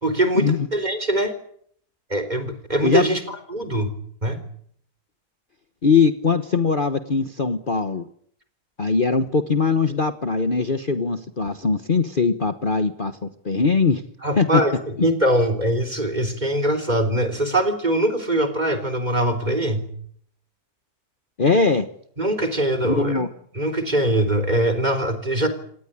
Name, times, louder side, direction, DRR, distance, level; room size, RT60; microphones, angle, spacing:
voice 1, 0.0-1.3 2.1-3.9 4.2-4.4 14.2-19.9 22.2-23.2 23.5-25.5, right 1 dB, 30° right, 10 dB, 3.9 m, -22 dB
voice 2, 5.8-8.0 8.8-14.0 14.4-14.6 21.4-21.9 22.9-23.3, left 4 dB, 35° left, 10 dB, 1.3 m, -21 dB
26.5 x 18.5 x 10.0 m, 0.65 s
omnidirectional pair, 1.6 m